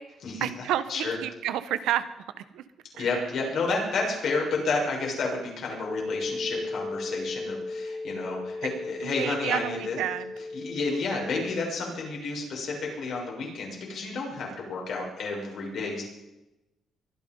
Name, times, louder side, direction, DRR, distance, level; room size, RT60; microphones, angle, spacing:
voice 1, 0.4-2.1 2.5-2.6 3.0-3.1 9.0-10.3, right 12 dB, 90° right, 13 dB, 1.0 m, -30 dB
voice 2, 2.9-10.0 10.5-16.0, left 3 dB, 65° left, -1 dB, 6.5 m, -31 dB
sound 1, 5.8-11.6, left 2 dB, 30° left, 2.8 m, -36 dB
23.0 x 10.5 x 5.4 m, 0.96 s
cardioid pair, 90°, 0 cm